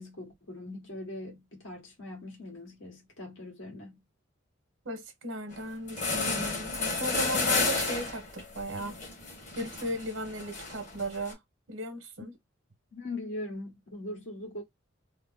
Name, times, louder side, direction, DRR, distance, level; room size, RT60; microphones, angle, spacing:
voice 1, 0.0-4.0 12.9-14.6, left 2 dB, 70° left, 1.7 m, -41 dB
voice 2, 4.8-9.0 9.6-11.4 11.7-12.3, right 1 dB, 80° right, 0.9 m, -36 dB
sound 1, 5.5-5.6 5.9-11.3, left 3 dB, 40° left, 1.4 m, -32 dB
3.2 x 2.0 x 3.5 m
head